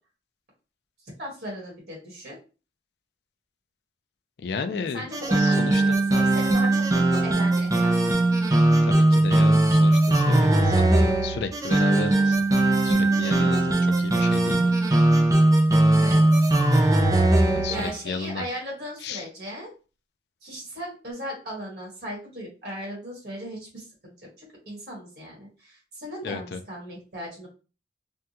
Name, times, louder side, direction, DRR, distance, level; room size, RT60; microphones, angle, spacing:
voice 1, 1.2-2.4 4.7-5.5 5.8-8.2 15.9-16.2 17.7-19.7 20.4-27.5, equal, 65° right, -3 dB, 1.5 m, -37 dB
voice 2, 4.4-5.1 5.4-5.8 8.8-12.4 12.8-14.7 17.5-18.4 19.0-19.2 26.2-26.6, left 5 dB, 70° left, 9 dB, 0.4 m, -33 dB
sound 1, 5.1-17.9, right 2 dB, 20° right, 0.4 m, -20 dB
3.5 x 2.2 x 2.8 m, 0.34 s
head